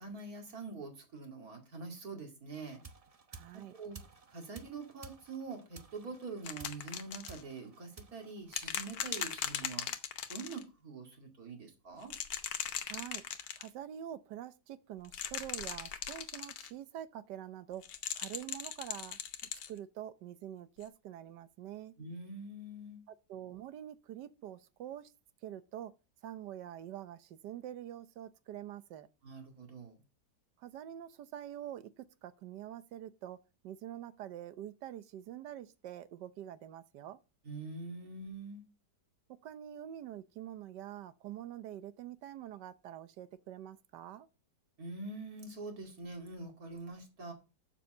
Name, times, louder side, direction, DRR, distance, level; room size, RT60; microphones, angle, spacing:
voice 1, 0.0-2.8 3.7-4.0 4.3-9.9 10.3-12.1 22.0-23.1 29.2-30.0 37.4-38.6 44.8-47.3, right 3 dB, 55° right, 2.7 m, -45 dB
sound 1, 2.5-9.1, right 4 dB, 30° right, 0.7 m, -55 dB
voice 2, 3.3-3.7 12.9-13.2 13.6-17.8 18.1-19.2 19.7-21.9 23.1-25.1 25.4-25.9 26.2-29.1 30.6-33.4 33.6-37.2 39.4-44.3, right 11 dB, 75° right, 1.4 m, -46 dB
sound 2, 6.4-7.4 8.5-10.6 12.0-13.7 15.0-16.7 17.8-19.7 20.8-20.9, left 9 dB, 75° left, 1.5 m, -39 dB
7.2 x 5.8 x 7.5 m
omnidirectional pair, 1.9 m